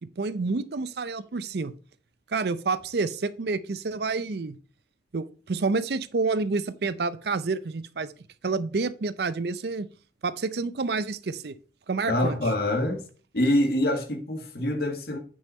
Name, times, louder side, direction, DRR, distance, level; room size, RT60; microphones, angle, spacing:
voice 1, 0.0-1.7 2.3-4.6 5.1-8.1 8.4-9.9 10.2-11.6 11.9-12.4, right 4 dB, 60° right, 0.5 m, -28 dB
voice 2, 12.1-13.0 13.3-15.2, left 1 dB, 60° left, 1.8 m, -25 dB
9.0 x 5.6 x 4.3 m
head